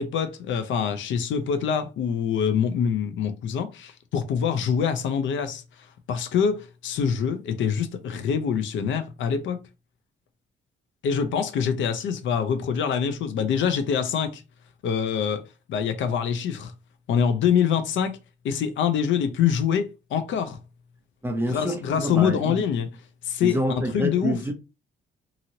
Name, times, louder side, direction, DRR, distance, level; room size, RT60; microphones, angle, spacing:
voice 1, 0.0-5.6 6.1-9.6 11.0-14.4 14.8-15.4 15.7-16.7 17.1-18.2 18.4-20.6 21.5-22.9 23.2-24.4, left 7 dB, 75° left, 0.6 m, -25 dB
voice 2, 21.2-22.6 23.4-24.5, right 1 dB, 10° right, 0.7 m, -27 dB
2.9 x 2.7 x 2.8 m
cardioid pair, 90°, 20 cm